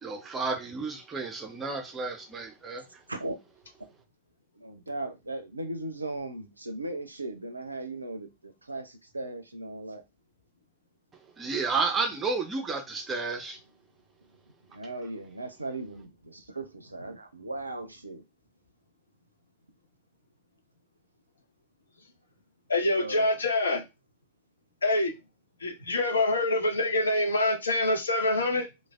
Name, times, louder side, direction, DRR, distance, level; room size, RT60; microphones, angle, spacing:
voice 1, 0.0-2.8 11.4-13.6, right 4 dB, 20° right, 0.5 m, -31 dB
voice 2, 4.6-10.0 14.7-18.2 22.9-23.3, right 2 dB, 80° right, 0.4 m, -37 dB
voice 3, 22.7-23.8 24.8-25.1 25.6-28.7, left 2 dB, 75° left, 0.6 m, -25 dB
3.2 x 2.1 x 2.3 m
figure-of-eight pair, 90°, 0 cm